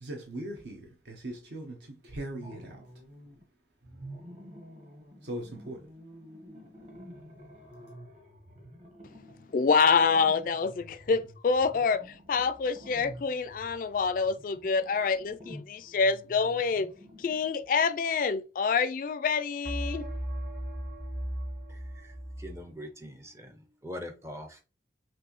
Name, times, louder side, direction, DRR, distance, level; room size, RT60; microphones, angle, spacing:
voice 1, 0.0-2.8 5.2-5.9, right 1 dB, 70° right, 0.9 m, -39 dB
sound 1, 2.1-3.4 3.8-17.7, equal, 40° right, 1.2 m, -49 dB
voice 2, 9.5-12.0 12.3-16.9 17.2-20.0, left 5 dB, 50° left, 0.3 m, -26 dB
sound 2, 12.3-13.2 19.7-22.7, equal, 55° right, 1.6 m, -37 dB
voice 3, 21.7-24.6, left 1 dB, 15° right, 0.5 m, -43 dB
6.0 x 2.6 x 3.0 m
head